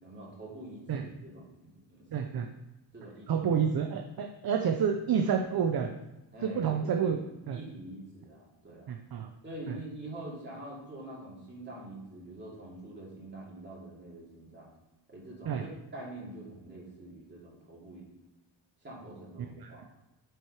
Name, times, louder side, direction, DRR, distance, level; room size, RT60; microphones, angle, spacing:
voice 1, 0.0-2.1 2.9-3.4 6.3-7.3 7.5-8.9 9.4-14.7 15.1-18.1 18.8-19.9, right 1 dB, 25° right, -5 dB, 2.6 m, -45 dB
voice 2, 2.1-2.5 3.3-5.9 6.4-7.2 7.5-7.6 8.9-9.3 9.7-9.8 15.5-15.6 19.6-19.7, right 7 dB, 50° right, 3 dB, 0.6 m, -29 dB
7.7 x 4.6 x 4.8 m, 0.99 s
wide cardioid pair, 145°, 45 cm